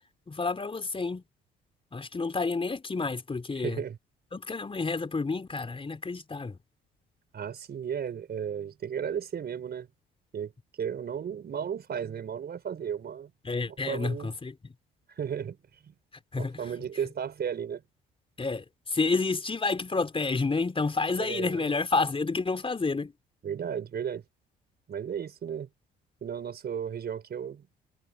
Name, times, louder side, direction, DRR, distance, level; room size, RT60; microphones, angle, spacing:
voice 1, 0.3-1.2 1.9-3.8 4.3-6.6 13.4-14.7 16.3-16.7 18.4-23.1, left 4 dB, 25° left, 3.8 m, -29 dB
voice 2, 3.6-4.0 7.3-9.9 10.3-10.5 10.8-13.3 13.7-14.3 15.1-15.6 15.8-15.9 16.4-17.8 21.1-21.7 23.4-24.2 24.9-25.7 26.2-27.7, right 8 dB, 50° right, 4.9 m, -34 dB
hypercardioid pair, 60°, 21 cm